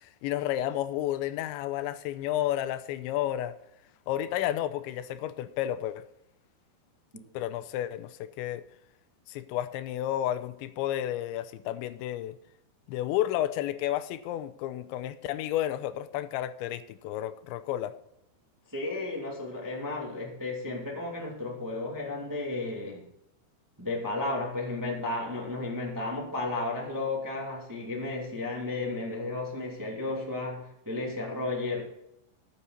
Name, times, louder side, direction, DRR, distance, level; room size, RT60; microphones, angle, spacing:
voice 1, 0.0-3.5 4.1-6.1 7.3-8.6 9.3-12.4 12.9-17.9, left 12 dB, 85° left, 3.0 m, -31 dB
voice 2, 18.7-23.0 23.8-31.8, left 2 dB, 10° right, 1.1 m, -33 dB
14.0 x 9.1 x 4.1 m
omnidirectional pair, 5.1 m